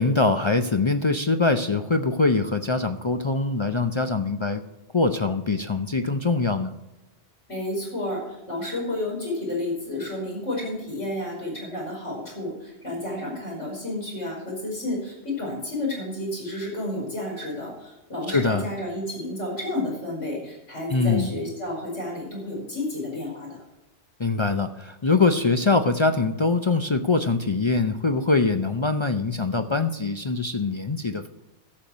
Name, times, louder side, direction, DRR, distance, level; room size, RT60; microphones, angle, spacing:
voice 1, 0.0-4.6 4.9-6.7 18.3-18.7 20.9-21.3 24.2-31.3, left 3 dB, 40° left, 7 dB, 0.4 m, -23 dB
voice 2, 7.5-23.6, left 1 dB, 80° left, -3 dB, 5.5 m, -31 dB
12.0 x 7.0 x 6.2 m, 0.97 s
omnidirectional pair, 1.2 m